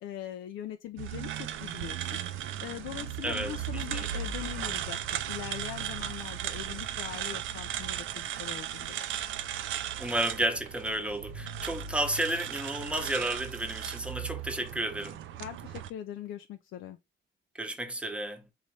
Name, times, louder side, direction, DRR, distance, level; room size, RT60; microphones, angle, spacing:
voice 1, 0.0-2.2 2.6-9.0 15.4-17.0, left 11 dB, 80° left, 0.5 m, -41 dB
sound 1, 1.0-15.9, right 10 dB, 80° right, 0.5 m, -36 dB
voice 2, 3.2-4.1 10.0-15.2 17.6-18.4, right 1 dB, 5° right, 0.9 m, -32 dB
4.0 x 3.1 x 3.2 m
cardioid pair, 90°, 20 cm